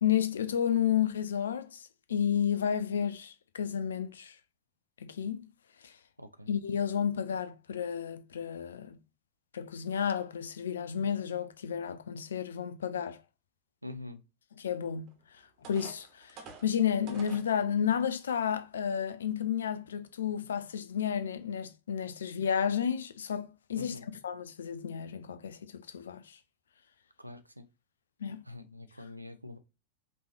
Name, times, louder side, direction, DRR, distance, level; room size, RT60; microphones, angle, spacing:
voice 1, 0.0-4.4 5.0-5.5 5.8-5.9 6.5-9.0 9.5-13.2 14.6-15.1 15.6-23.9 24.2-26.4 28.2-28.4, left 8 dB, 65° left, 0.5 m, -32 dB
voice 2, 6.2-6.6 13.8-14.2 23.8-24.1 27.2-27.6 28.5-29.6, left 2 dB, 85° right, 0.6 m, -45 dB
sound 1, 15.1-15.2 15.6-17.5 18.2-18.3 18.8-19.0, right 4 dB, 40° right, 1.3 m, -49 dB
5.2 x 3.2 x 2.8 m
figure-of-eight pair, 90°, 0 cm